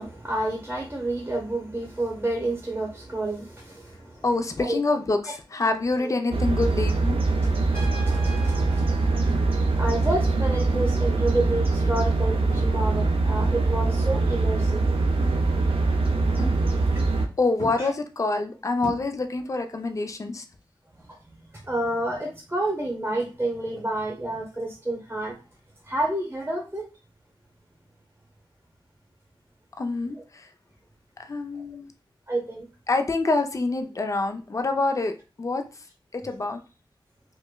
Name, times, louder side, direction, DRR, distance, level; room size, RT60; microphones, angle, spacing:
voice 1, 0.0-4.2 4.6-4.8 5.2-5.3 6.0-6.1 7.4-9.3 9.8-14.8 17.8-17.9 21.0-25.4 25.8-26.8 32.3-32.7, right 1 dB, 20° right, 0.8 m, -30 dB
voice 2, 4.2-7.2 17.4-20.4 29.8-30.5 31.3-31.9 32.9-35.6 36.1-36.6, left 3 dB, 35° left, 0.4 m, -26 dB
sound 1, 6.3-17.3, right 3 dB, 90° right, 0.5 m, -23 dB
Trumpet, 7.7-10.4, right 2 dB, 75° left, 1.4 m, -44 dB
sound 2, 9.3-9.7 10.0-10.4 10.7-11.9 12.5-12.8 13.2-14.0 15.2-15.7 16.4-17.3 17.6-19.5 19.7-20.2 22.2-22.3, equal, 55° left, 1.2 m, -39 dB
4.9 x 2.2 x 2.2 m
wide cardioid pair, 105°, 9 cm